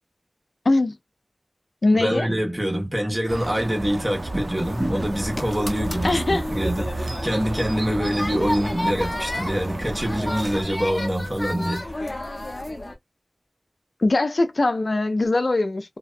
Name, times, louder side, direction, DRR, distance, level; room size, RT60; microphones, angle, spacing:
voice 1, 0.7-1.0 1.8-2.3 6.0-6.4 14.0-16.0, left 2 dB, 70° left, 0.3 m, -21 dB
voice 2, 1.9-12.1, equal, 30° right, 1.2 m, -25 dB
sound 1, 3.3-10.6, right 2 dB, 70° right, 0.5 m, -33 dB
sound 2, 4.6-12.9, left 1 dB, 45° left, 0.7 m, -32 dB
2.5 x 2.2 x 2.4 m
wide cardioid pair, 45°, 0 cm